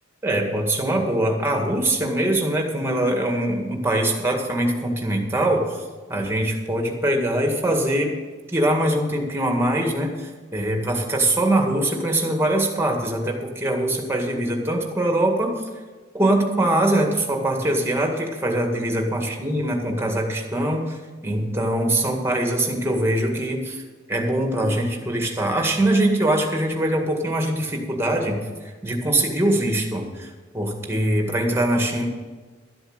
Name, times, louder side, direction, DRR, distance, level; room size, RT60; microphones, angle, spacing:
voice 1, 0.2-5.8 6.1-8.1 8.5-15.5 16.1-21.0 21.2-23.8 24.1-28.4 28.8-32.1, right 1 dB, 15° right, 2 dB, 1.9 m, -22 dB
12.5 x 8.0 x 6.6 m, 1.4 s
head